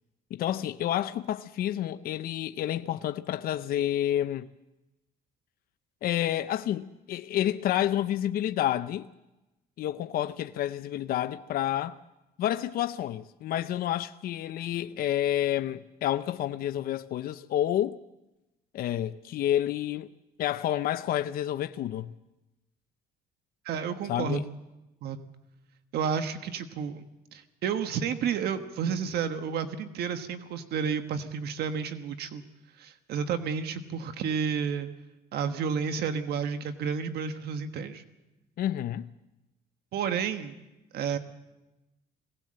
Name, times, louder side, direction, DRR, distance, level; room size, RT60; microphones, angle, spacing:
voice 1, 0.3-4.5 6.0-9.1 9.8-12.0 12.4-18.0 18.7-20.1 20.4-22.1 24.1-24.4 38.6-39.1, left 12 dB, 60° left, 0.6 m, -29 dB
voice 2, 23.6-24.4 25.0-25.2 25.9-27.0 27.3-32.4 32.8-34.9 35.3-38.0 39.9-40.6 40.9-41.2, right 7 dB, 70° right, 1.4 m, -31 dB
21.5 x 18.0 x 7.6 m
cardioid pair, 110°, 17 cm